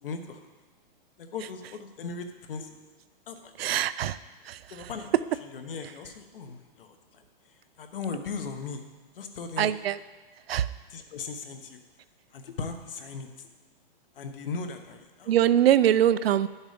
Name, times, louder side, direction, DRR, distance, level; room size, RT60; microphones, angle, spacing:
voice 1, 0.0-0.4 1.2-2.8 3.3-3.5 4.7-5.2 5.5-7.2 7.8-8.8 9.1-9.7 10.9-11.8 12.3-13.5 14.1-15.3, left 4 dB, 65° left, 6 dB, 1.2 m, -38 dB
voice 2, 3.6-4.2 4.5-4.6 9.6-10.0 10.5-10.7 15.3-16.5, right 11 dB, 85° right, 16 dB, 0.5 m, -22 dB
10.5 x 7.2 x 5.1 m, 1.3 s
hypercardioid pair, 180°, 29 cm